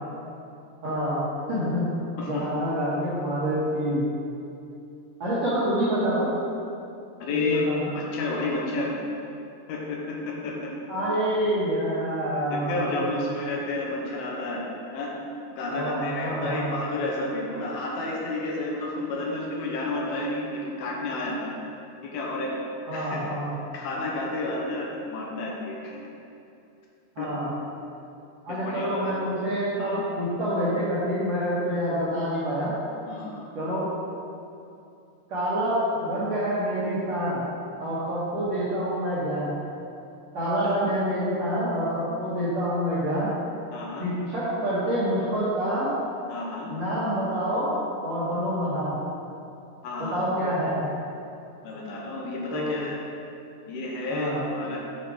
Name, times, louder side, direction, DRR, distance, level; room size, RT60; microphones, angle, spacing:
voice 1, 0.8-1.9 2.2-4.1 5.2-6.3 7.3-7.9 10.9-13.3 15.7-16.7 22.9-23.5 27.2-27.5 28.4-32.8 33.6-33.9 35.3-37.4 37.8-39.5 40.3-43.3 44.0-45.9 46.7-47.7 48.0-49.0 50.0-50.9 52.5-52.8 54.1-54.4, equal, 60° right, -10 dB, 1.9 m, -27 dB
voice 2, 7.2-7.7 7.9-8.9 9.7-10.7 12.5-14.6 14.9-15.1 15.6-21.5 22.0-22.5 22.9-23.2 23.7-26.0 27.2-27.3 28.5-29.1 29.8-30.0 33.1-33.5 43.7-44.1 46.3-46.7 49.8-50.2 51.6-53.0 53.7-54.8, left 2 dB, 80° left, -2 dB, 2.7 m, -31 dB
8.0 x 5.0 x 4.6 m, 2.6 s
omnidirectional pair, 4.6 m